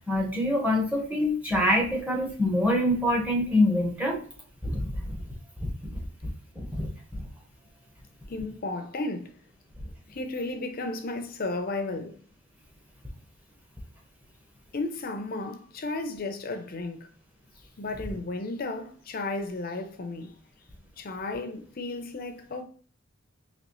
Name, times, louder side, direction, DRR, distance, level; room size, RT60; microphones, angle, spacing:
voice 1, 0.1-4.2 4.6-5.2 5.6-5.7 6.6-6.9, left 1 dB, 5° right, 1.0 m, -25 dB
voice 2, 8.3-9.3 10.1-12.2 14.7-17.1 17.8-20.3 21.0-22.6, left 2 dB, 45° left, 0.6 m, -33 dB
4.1 x 3.0 x 3.0 m
head